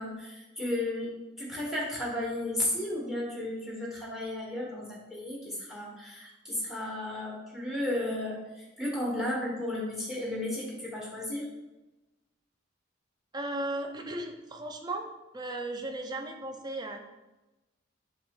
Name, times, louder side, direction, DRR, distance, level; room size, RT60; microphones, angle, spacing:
voice 1, 0.0-11.5, left 1 dB, ahead, -3 dB, 1.1 m, -34 dB
voice 2, 13.3-15.1 15.3-17.0, right 2 dB, 20° right, 4 dB, 0.4 m, -36 dB
6.2 x 2.3 x 3.6 m, 1.0 s
head